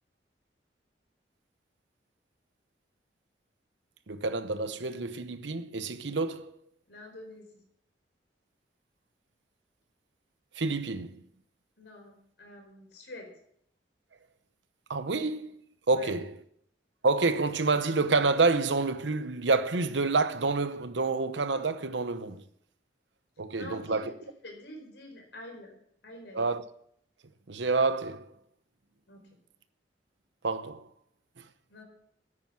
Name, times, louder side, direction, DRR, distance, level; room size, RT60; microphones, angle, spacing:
voice 1, 4.1-6.5 10.6-11.2 14.9-15.5 15.9-16.4 17.0-22.4 23.4-24.1 26.3-26.6 27.5-28.3 30.4-30.9 31.4-31.5, right 3 dB, 90° right, 0.9 m, -28 dB
voice 2, 6.9-7.6 11.8-13.3 15.9-16.1 23.5-24.1 24.4-25.7 26.0-26.4 29.1-29.2 31.7-31.9, left 1 dB, 85° left, 4.7 m, -46 dB
9.9 x 9.5 x 7.5 m
head